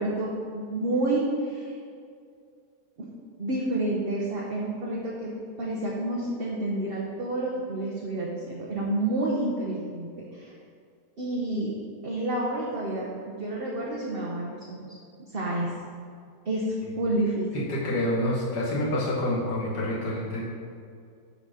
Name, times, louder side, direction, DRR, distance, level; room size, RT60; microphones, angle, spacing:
voice 1, 0.0-1.7 3.4-5.3 5.6-10.5 11.2-11.7 12.0-15.0 15.3-15.7 16.4-17.5, right 1 dB, 45° right, -4 dB, 0.9 m, -29 dB
voice 2, 17.5-20.4, left 1 dB, 75° left, -5 dB, 1.7 m, -27 dB
10.0 x 4.1 x 4.9 m, 2.3 s
omnidirectional pair, 1.8 m